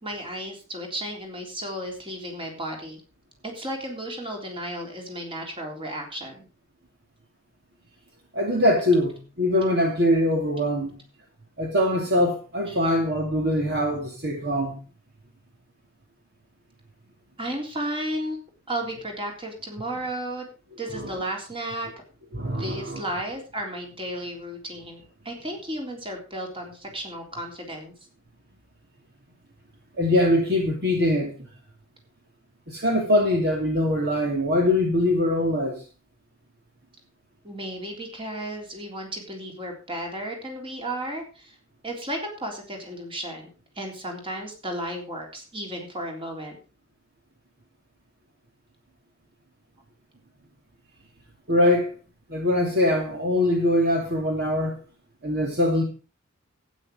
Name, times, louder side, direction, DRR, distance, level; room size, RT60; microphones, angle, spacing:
voice 1, 0.0-3.0 3.4-6.4 12.7-12.8 17.4-18.4 18.7-20.5 20.8-21.9 22.4-27.9 37.4-41.6 41.8-43.5 43.8-46.6, right 1 dB, 25° right, 3.6 m, -34 dB
voice 2, 8.3-11.0 11.6-14.8 20.9-21.1 22.3-23.0 30.0-31.5 32.7-35.8 51.5-51.9 52.3-54.8 55.2-55.8, left 1 dB, 55° right, 2.7 m, -23 dB
12.0 x 9.6 x 5.0 m
head